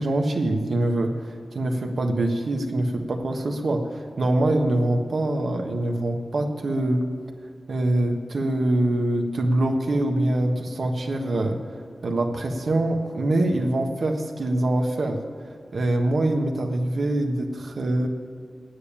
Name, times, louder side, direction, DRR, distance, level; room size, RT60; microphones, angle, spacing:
voice 1, 0.0-7.0 7.7-11.6 12.0-15.2 15.7-18.1, right 1 dB, 75° right, 3 dB, 1.3 m, -24 dB
9.6 x 8.8 x 8.4 m, 2.1 s
wide cardioid pair, 95°, 0 cm